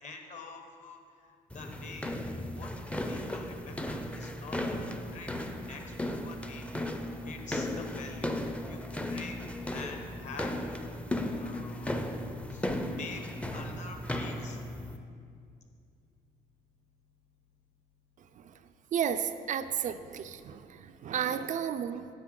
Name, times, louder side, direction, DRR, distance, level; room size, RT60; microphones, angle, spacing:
voice 1, 0.0-2.2 2.5-2.7 3.1-4.8 5.1-5.3 5.7-6.6 7.2-8.8 9.1-9.4 9.7-10.9 11.3-11.9 12.5-13.2 13.5-14.6, left 4 dB, 45° left, 4 dB, 1.2 m, -46 dB
sound 1, 1.5-15.0, left 1 dB, 5° left, 0.5 m, -36 dB
voice 2, 18.9-22.1, right 8 dB, 50° right, 10 dB, 0.4 m, -33 dB
10.0 x 7.5 x 3.8 m, 2.4 s
cardioid pair, 110°, 17 cm